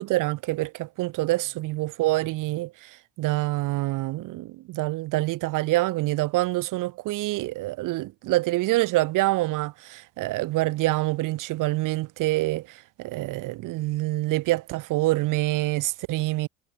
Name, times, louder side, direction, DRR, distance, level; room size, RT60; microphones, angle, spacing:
voice 1, 0.0-16.5, right 18 dB, 60° right, 3.2 m, -26 dB
supercardioid pair, 90°, 35 cm